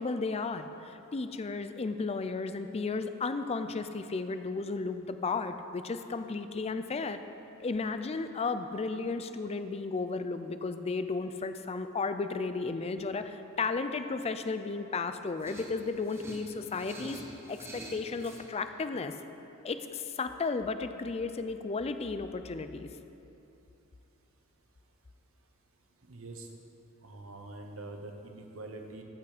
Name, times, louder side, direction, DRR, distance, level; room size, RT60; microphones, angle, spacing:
voice 1, 0.0-7.2 7.6-17.2 17.5-19.1 19.6-22.9, left 4 dB, 30° left, 9 dB, 0.4 m, -34 dB
sound 1, 15.4-18.5, right 1 dB, 10° right, 1.0 m, -46 dB
voice 2, 26.0-26.5 27.0-29.0, right 2 dB, 75° right, 4 dB, 1.0 m, -44 dB
14.0 x 5.9 x 5.0 m, 2.9 s
head